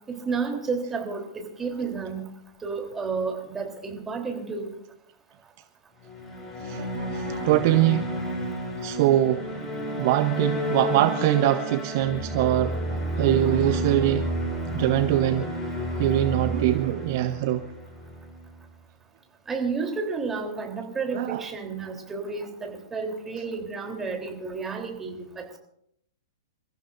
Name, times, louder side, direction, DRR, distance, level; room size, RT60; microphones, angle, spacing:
voice 1, 0.1-2.3 2.6-4.7 19.5-25.6, right 4 dB, 15° right, 3.5 m, -31 dB
sound 1, 6.0-18.5, equal, 15° left, 7.1 m, -31 dB
voice 2, 6.6-8.5 8.8-9.5 10.0-14.3 14.7-15.5 16.0-17.7 21.1-21.4, right 13 dB, 45° right, 0.8 m, -23 dB
29.0 x 15.0 x 2.6 m
figure-of-eight pair, 110°, 2 cm